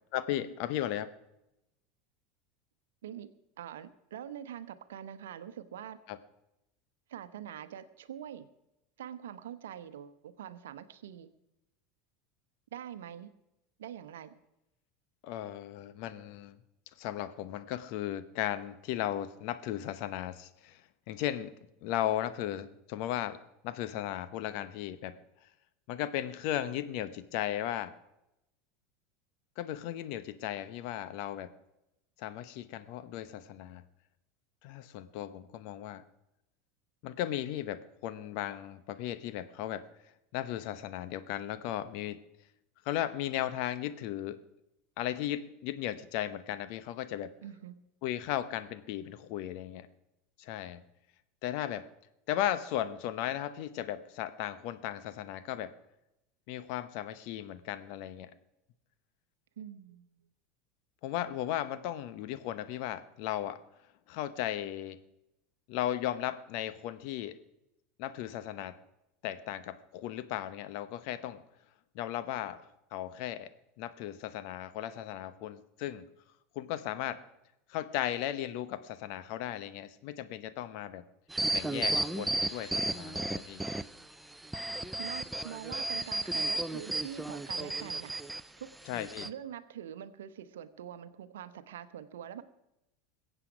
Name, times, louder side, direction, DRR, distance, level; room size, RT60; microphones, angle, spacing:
voice 1, 0.1-1.1 6.1-6.2 15.2-16.6 17.0-20.8 21.1-21.5 21.8-25.2 25.9-27.9 29.6-31.5 32.2-33.8 34.6-36.0 37.0-39.8 40.3-42.2 42.8-44.4 45.0-47.3 48.0-49.9 50.4-50.8 51.4-51.9 52.3-55.7 56.5-58.3 61.0-63.6 64.1-65.0 65.7-67.4 68.0-68.8 69.2-71.4 71.9-72.6 72.9-76.1 76.5-77.2 77.7-81.0 81.5-83.6 88.9-89.3, left 12 dB, 60° left, 13 dB, 0.9 m, -36 dB
voice 2, 3.6-6.0 7.1-8.5 9.0-11.3 12.7-13.3 13.8-14.4 47.4-47.7 59.6-60.1 85.0-88.1 88.6-88.7 89.2-92.4, right 10 dB, 75° right, 13 dB, 0.9 m, -44 dB
sound 1, 81.3-84.0 84.4-88.4 88.9-89.3, right 2 dB, 5° right, 0.6 m, -33 dB
21.5 x 8.1 x 5.1 m, 0.89 s
hypercardioid pair, 80°, 0 cm